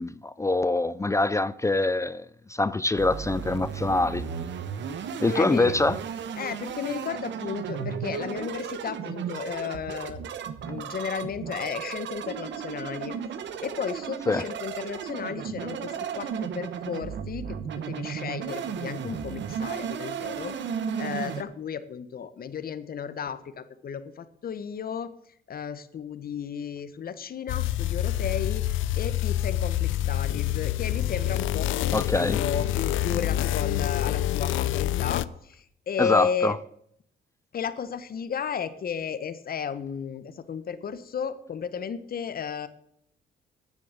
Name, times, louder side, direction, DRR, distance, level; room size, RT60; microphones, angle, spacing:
voice 1, 0.0-4.2 5.2-6.0 14.3-14.5 31.9-32.4 36.0-36.5, left 2 dB, 15° left, 0.4 m, -24 dB
sound 1, 3.0-21.4, right 7 dB, 65° right, 1.0 m, -34 dB
voice 2, 3.9-4.3 5.1-5.7 6.4-10.2 10.7-13.2 13.6-20.6 21.0-25.1 25.5-28.6 29.0-36.6 37.5-42.7, left 7 dB, 50° left, 1.0 m, -34 dB
sound 2, 27.5-35.3, left 13 dB, 80° left, 0.5 m, -27 dB
10.0 x 7.3 x 8.1 m
cardioid pair, 90°, 20 cm